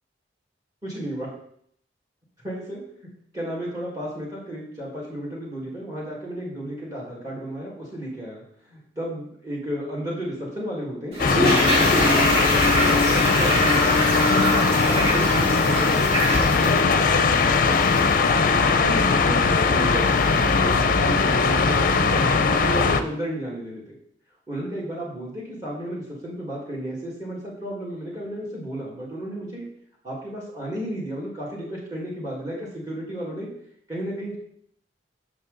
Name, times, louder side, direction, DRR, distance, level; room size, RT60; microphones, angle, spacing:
voice 1, 0.8-1.3 2.4-13.9 14.3-17.0 18.6-23.8 24.5-29.7 30.0-33.5 33.9-34.4, equal, 20° right, -5 dB, 1.8 m, -33 dB
Toilet flush, 11.1-18.2 18.5-18.6, equal, 65° right, 3.6 m, -25 dB
sound 1, 11.2-23.0, left 4 dB, 50° left, 0.5 m, -20 dB
7.0 x 6.4 x 3.8 m, 0.67 s
head